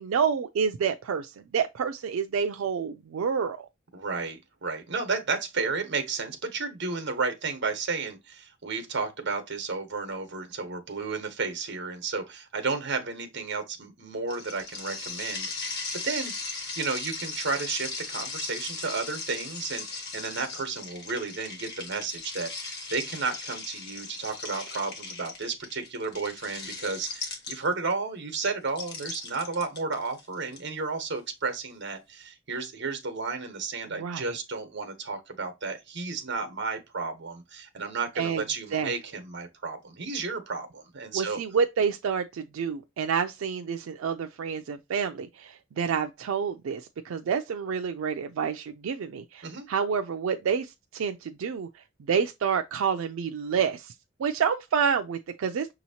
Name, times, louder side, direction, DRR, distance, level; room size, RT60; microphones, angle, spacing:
voice 1, 0.0-3.7 34.0-34.4 38.2-38.4 38.7-38.9 41.1-51.7 52.1-53.9 54.2-55.7, right 6 dB, 90° right, 0.4 m, -28 dB
voice 2, 3.9-41.4 49.4-49.7, right 4 dB, 60° right, 1.0 m, -32 dB
sound 1, 14.3-27.9 28.7-30.6, left 4 dB, 55° left, 1.4 m, -38 dB
6.1 x 2.9 x 2.8 m
head